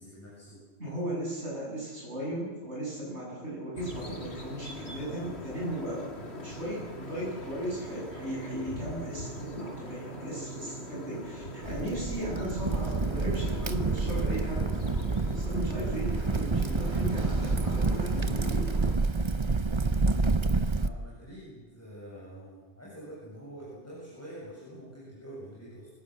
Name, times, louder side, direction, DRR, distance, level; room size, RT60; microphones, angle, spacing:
voice 1, 0.0-0.6 4.0-4.2 4.7-5.5 11.6-11.9 13.1-14.4 20.8-25.9, equal, 10° left, -7 dB, 7.5 m, -46 dB
voice 2, 0.8-6.0 6.3-14.6 15.3-18.7, right 1 dB, 70° right, -5 dB, 8.0 m, -36 dB
sound 1, 3.8-19.0, equal, 65° left, 2.7 m, -42 dB
Crackle, 11.6-20.9, right 3 dB, 30° right, 0.8 m, -28 dB
25.0 x 18.5 x 7.8 m, 1.3 s
omnidirectional pair, 1.2 m